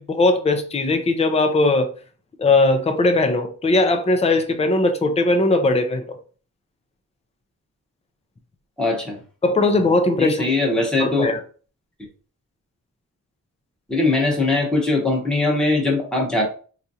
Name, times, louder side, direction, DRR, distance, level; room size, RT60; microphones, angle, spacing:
voice 1, 0.0-1.9 2.4-6.0 9.4-10.4 11.0-11.4, left 2 dB, 20° left, 0.4 m, -19 dB
voice 2, 8.8-9.2 10.2-11.3 13.9-16.4, left 2 dB, ahead, 0.9 m, -21 dB
4.3 x 2.5 x 2.7 m
wide cardioid pair, 170°, 34 cm